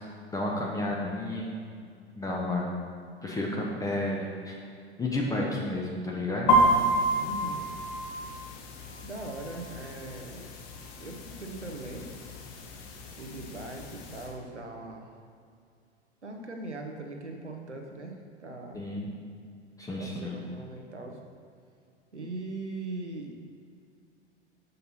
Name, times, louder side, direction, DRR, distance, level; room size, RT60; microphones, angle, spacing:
voice 1, 0.3-1.5 2.2-2.7 3.2-4.6 5.0-6.7 18.7-19.1 19.8-20.4, left 1 dB, 10° left, -3 dB, 0.8 m, -31 dB
sound 1, 6.5-14.3, right 1 dB, 45° left, 1.0 m, -30 dB
voice 2, 7.1-7.7 9.0-10.5 11.0-12.1 13.2-15.1 16.2-18.8 20.0-21.2 22.1-23.4, right 2 dB, 90° right, 2 dB, 0.9 m, -40 dB
6.6 x 5.4 x 4.1 m, 2.3 s
figure-of-eight pair, 85°, 34 cm